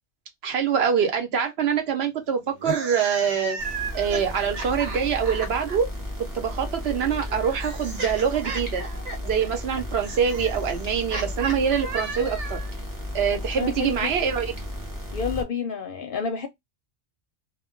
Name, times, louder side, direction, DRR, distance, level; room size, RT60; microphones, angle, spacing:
voice 1, 0.4-3.6 3.9-5.9 6.3-8.8 9.2-12.6 13.1-14.5, right 7 dB, 65° right, 0.9 m, -24 dB
sound 1, 2.5-5.8 6.8-12.7, right 3 dB, 85° right, 1.2 m, -35 dB
sound 2, 3.6-15.4, left 1 dB, 20° right, 0.6 m, -34 dB
voice 2, 13.6-14.1 15.1-16.5, left 6 dB, 60° left, 0.6 m, -29 dB
2.2 x 2.1 x 3.6 m
omnidirectional pair, 1.2 m